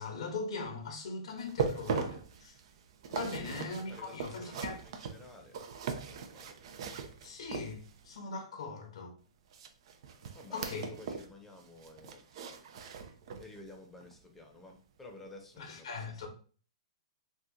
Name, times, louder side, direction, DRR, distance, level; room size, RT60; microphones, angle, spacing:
voice 1, 0.0-2.6 3.1-4.8 7.2-9.2 10.5-10.9 15.6-16.3, left 3 dB, 70° left, 0.9 m, -40 dB
sound 1, 1.4-8.1 9.5-11.3 11.6-13.6 14.0-14.2 14.7-14.8, right 5 dB, 55° right, 0.5 m, -39 dB
voice 2, 3.1-6.6 7.2-7.4 10.3-12.4 13.4-16.3, left 2 dB, 10° left, 0.7 m, -53 dB
2.8 x 2.4 x 3.6 m
hypercardioid pair, 125°, 3 cm